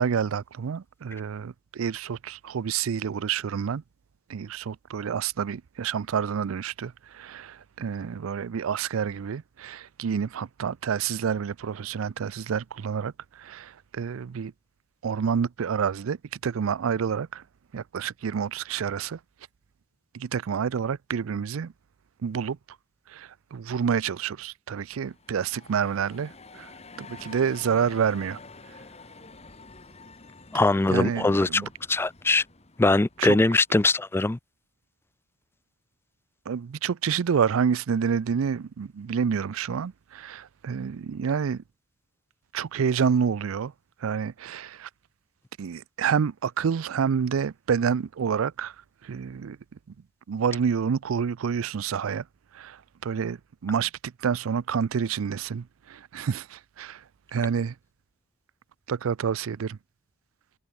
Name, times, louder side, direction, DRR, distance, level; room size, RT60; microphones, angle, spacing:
voice 1, 0.0-3.8 4.3-14.5 15.0-17.4 17.7-19.2 20.1-21.7 22.2-22.6 23.1-26.7 27.0-28.4 30.9-31.7 33.2-33.4 36.5-41.6 42.5-43.7 44.0-44.9 45.6-48.7 49.0-49.6 50.3-52.3 52.5-57.0 57.3-57.7 58.9-59.8, right 7 dB, 80° right, 0.4 m, -28 dB
sound 1, 25.0-33.8, left 3 dB, 30° left, 2.7 m, -48 dB
voice 2, 30.5-31.6 31.9-32.4 32.8-34.4, left 2 dB, 10° left, 0.3 m, -22 dB
head